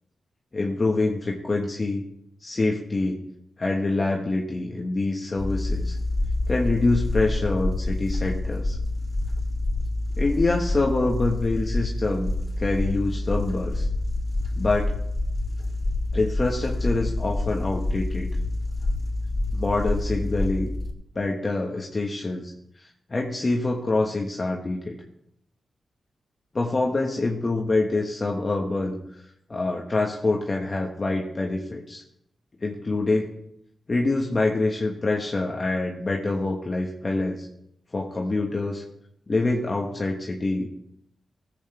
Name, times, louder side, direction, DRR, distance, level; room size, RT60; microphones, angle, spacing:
voice 1, 0.5-2.0 2.4-3.2 3.6-6.0 6.5-8.8 10.2-13.9 14.6-14.9 16.1-18.3 19.5-20.7 21.1-25.0 26.5-32.0 32.6-33.3 33.9-37.5 37.9-38.8 39.3-40.7, left 2 dB, 40° left, 0 dB, 1.4 m, -26 dB
sound 1, 5.4-20.9, left 2 dB, 25° left, 3.9 m, -27 dB
15.5 x 8.2 x 3.4 m, 0.76 s
supercardioid pair, 45°, 0 cm